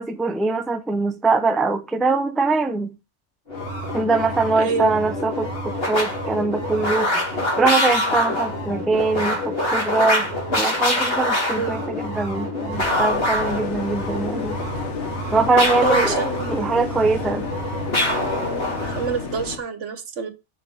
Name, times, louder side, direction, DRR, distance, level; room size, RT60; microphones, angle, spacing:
voice 1, 0.0-2.9 3.9-7.1 7.6-10.3 10.5-14.6 15.3-16.1 16.5-17.5, right 3 dB, ahead, 0.4 m, -22 dB
sound 1, 3.5-19.2, left 1 dB, 50° left, 3.3 m, -25 dB
voice 2, 4.5-4.9 11.5-11.8 15.8-16.8 18.9-20.3, right 5 dB, 80° right, 1.5 m, -27 dB
sound 2, 12.7-19.6, left 5 dB, 70° left, 1.5 m, -33 dB
6.5 x 5.4 x 5.3 m
omnidirectional pair, 1.2 m